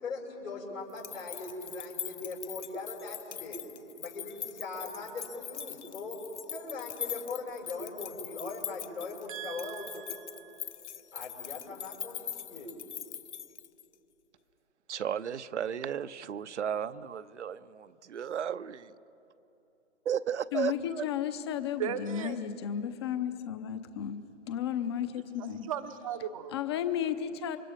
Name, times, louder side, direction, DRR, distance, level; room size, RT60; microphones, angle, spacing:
voice 1, 0.0-3.6 4.0-6.2 6.5-10.0 11.1-12.9, left 3 dB, 85° left, -3 dB, 6.3 m, -40 dB
sound 1, 0.9-13.9, left 9 dB, 65° left, 0.9 m, -42 dB
voice 2, 9.3-10.7 21.8-22.4 25.4-26.5, right 9 dB, 30° right, 11 dB, 0.7 m, -38 dB
voice 3, 14.9-18.9 20.1-21.1, right 8 dB, 70° right, 14 dB, 0.8 m, -34 dB
voice 4, 20.5-24.2 24.4-25.7 26.5-27.6, left 9 dB, 20° left, 11 dB, 0.6 m, -33 dB
29.5 x 24.5 x 5.1 m, 2.8 s
hypercardioid pair, 150°, 37 cm